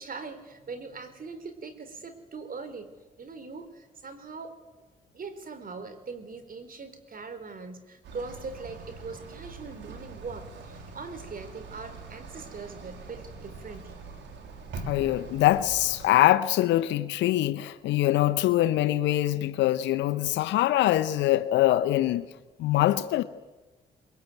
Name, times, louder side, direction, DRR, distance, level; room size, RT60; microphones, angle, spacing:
voice 1, 0.0-4.6 5.1-14.1, right 4 dB, 50° right, 4.0 m, -41 dB
sound 1, 8.0-16.1, right 3 dB, 85° right, 3.3 m, -43 dB
voice 2, 14.9-22.3 22.6-23.2, left 14 dB, 90° left, 0.9 m, -23 dB
22.5 x 22.0 x 9.3 m
supercardioid pair, 60°, 18 cm